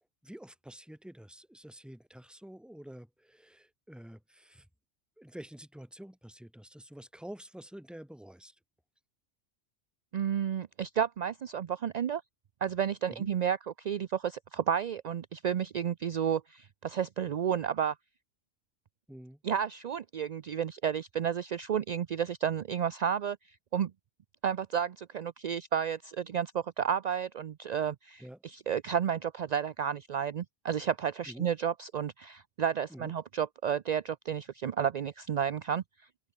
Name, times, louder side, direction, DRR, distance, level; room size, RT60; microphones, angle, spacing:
voice 1, 0.2-4.7 5.2-8.5 13.1-13.3 19.1-19.4 28.2-28.4 31.3-31.5 32.9-33.1, equal, ahead, 1.4 m, -48 dB
voice 2, 10.1-12.2 12.6-17.9 19.4-23.4 23.7-23.9 24.4-35.8, right 8 dB, 55° right, 0.4 m, -31 dB
open air
omnidirectional pair, 1.2 m